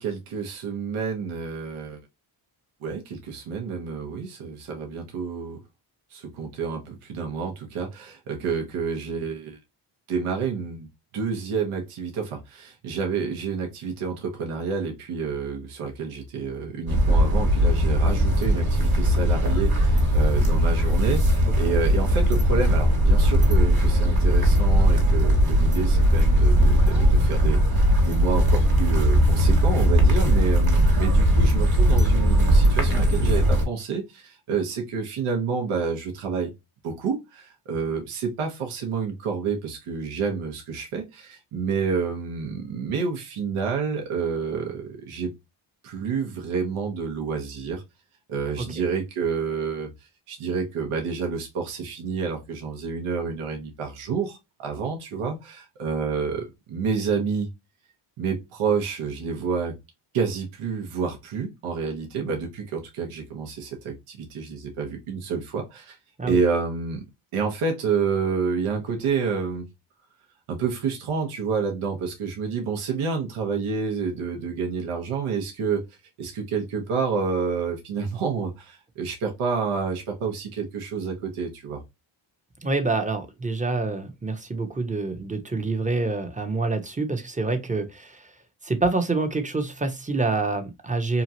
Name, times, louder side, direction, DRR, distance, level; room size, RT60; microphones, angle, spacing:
voice 1, 0.0-2.0 2.8-5.6 6.1-9.6 10.1-10.9 11.1-36.5 36.8-45.3 45.8-47.8 48.3-49.9 50.3-57.5 58.2-59.7 60.1-66.0 66.2-67.0 67.3-69.7 70.5-75.8 76.2-81.8, right 5 dB, 80° right, 0.9 m, -29 dB
sound 1, 16.9-33.7, equal, 45° right, 1.4 m, -19 dB
voice 2, 82.6-88.1 88.6-91.2, right 3 dB, 15° right, 0.7 m, -26 dB
2.9 x 2.4 x 2.6 m
cardioid pair, 65°, 50 cm